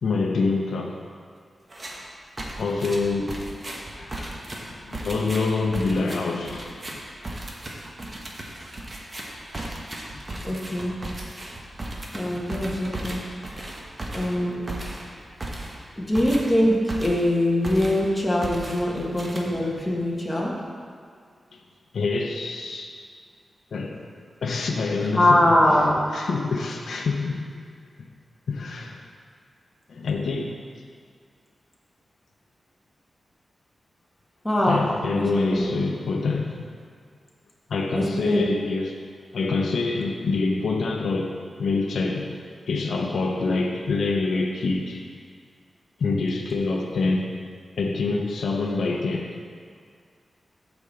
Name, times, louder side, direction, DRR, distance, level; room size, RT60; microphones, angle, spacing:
voice 1, 0.0-1.0 2.6-3.4 4.0-7.0 10.1-10.2 13.8-13.9 21.5-21.6 21.9-22.9 23.7-24.0 24.4-25.5 26.1-27.6 28.0-28.1 28.5-29.1 29.9-30.6 34.7-36.6 37.7-39.0 39.3-45.0 46.0-47.3 47.8-49.3, left 3 dB, 80° left, 1 dB, 0.8 m, -26 dB
sound 1, 1.7-2.0 2.4-17.4 17.6-18.1 18.4-19.8, right 1 dB, 30° right, 1.2 m, -36 dB
voice 2, 10.4-11.0 12.1-13.2 14.1-14.7 16.0-20.5 25.1-26.0 34.4-34.9 35.1-35.7 37.9-38.5, left 1 dB, 10° left, -4 dB, 1.5 m, -22 dB
8.5 x 4.5 x 7.0 m, 2.1 s
wide cardioid pair, 135°, 0 cm